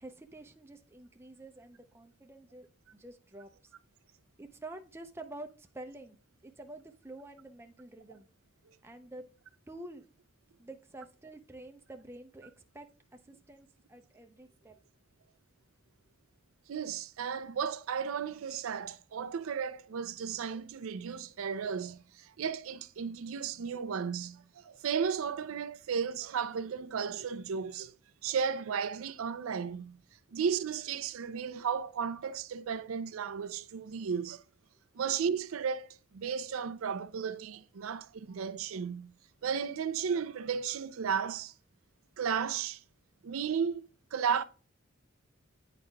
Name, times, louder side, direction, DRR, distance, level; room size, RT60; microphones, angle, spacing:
voice 1, 0.0-2.7 2.9-3.7 4.4-6.2 6.4-8.3 8.8-9.3 9.7-10.1 10.6-14.8, right 2 dB, 10° right, 0.5 m, -48 dB
voice 2, 16.7-27.9 28.2-30.0 30.3-34.4 34.9-39.1 39.4-41.5 42.2-42.8 43.2-43.8 44.1-44.4, right 7 dB, 90° right, 0.4 m, -34 dB
8.8 x 4.9 x 2.2 m
head